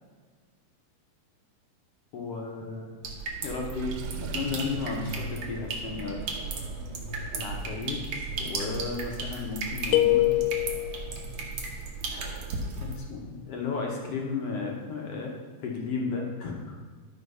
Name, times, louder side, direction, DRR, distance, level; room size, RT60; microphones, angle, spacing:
voice 1, 2.1-3.0 3.4-6.3 7.3-10.3 12.1-12.5 12.8-15.3 15.6-16.8, left 4 dB, 65° left, 0 dB, 1.6 m, -34 dB
sound 1, 3.0-13.0, right 3 dB, 55° right, 1.8 m, -35 dB
Water / Sink (filling or washing), 3.7-5.5, right 9 dB, 85° right, 2.2 m, -42 dB
sound 2, 9.9-11.1, left 16 dB, 85° left, 2.2 m, -23 dB
12.0 x 4.9 x 5.5 m, 1.5 s
omnidirectional pair, 3.9 m